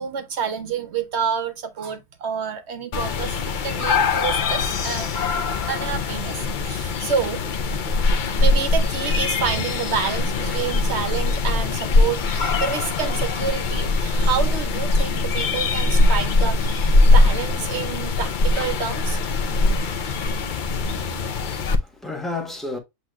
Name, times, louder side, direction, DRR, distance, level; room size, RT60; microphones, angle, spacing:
voice 1, 0.0-5.1 5.7-7.4 8.3-19.2, right 6 dB, 55° right, 0.8 m, -28 dB
sound 1, 2.9-21.8, left 3 dB, 85° left, 0.4 m, -21 dB
voice 2, 20.5-22.8, left 3 dB, ahead, 0.7 m, -34 dB
7.8 x 2.9 x 2.3 m
omnidirectional pair, 1.6 m